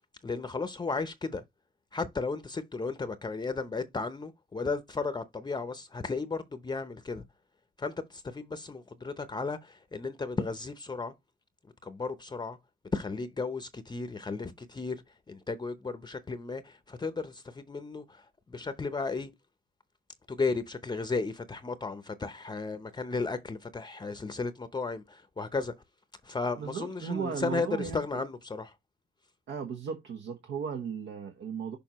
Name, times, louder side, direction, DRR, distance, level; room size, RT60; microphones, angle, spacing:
voice 1, 0.2-1.4 1.9-7.2 7.8-11.1 11.8-12.6 12.9-19.3 20.3-25.7 26.2-28.7, left 4 dB, 20° left, 0.7 m, -34 dB
voice 2, 26.6-28.0 29.5-31.8, right 6 dB, 70° right, 1.1 m, -36 dB
6.6 x 5.3 x 3.0 m
cardioid pair, 90°, 20 cm